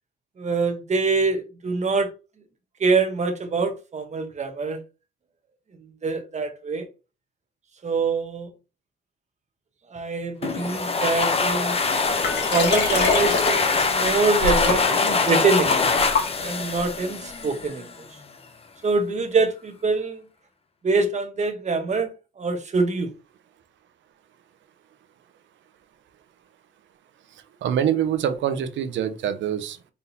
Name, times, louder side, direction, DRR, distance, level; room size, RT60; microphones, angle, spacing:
voice 1, 0.4-2.1 2.8-4.8 6.0-6.9 7.8-8.5 9.9-11.8 12.5-18.1 18.8-20.2 20.8-23.1, right 4 dB, 35° right, 1.1 m, -25 dB
sound 1, 10.4-17.9, left 4 dB, 30° left, 0.7 m, -24 dB
Liquid, 12.2-16.8 17.4-17.5, left 4 dB, 60° left, 1.7 m, -26 dB
voice 2, 27.3-29.9, right 9 dB, 70° right, 0.7 m, -25 dB
4.1 x 3.8 x 2.8 m
cardioid pair, 90°, 20 cm